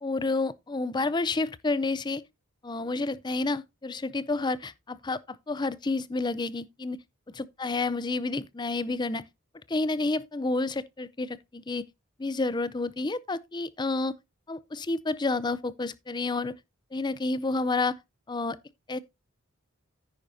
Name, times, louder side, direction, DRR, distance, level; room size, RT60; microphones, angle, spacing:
voice 1, 0.0-2.2 2.6-7.0 7.3-9.3 9.7-11.9 12.2-14.1 14.5-16.5 16.9-18.0 18.3-18.6 18.9-19.0, left 3 dB, 20° left, 0.5 m, -30 dB
10.0 x 9.2 x 2.6 m
head